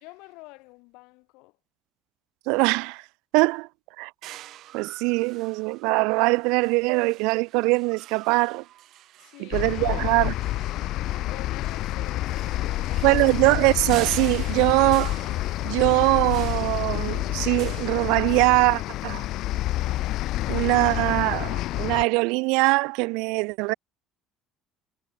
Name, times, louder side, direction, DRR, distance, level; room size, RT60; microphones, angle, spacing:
voice 1, 0.0-1.5 9.2-10.3 11.3-13.1, left 26 dB, 80° left, 2.9 m, -46 dB
voice 2, 2.5-3.0 3.3-3.7 4.0-4.4 4.7-8.6 9.4-10.3 13.0-15.2 15.6-19.2 20.5-23.7, right 28 dB, 80° right, 0.6 m, -22 dB
sound 1, 4.2-18.7, right 14 dB, 60° right, 1.1 m, -45 dB
sound 2, 9.5-22.1, left 15 dB, 65° left, 0.5 m, -28 dB
cardioid pair, 110°, 0 cm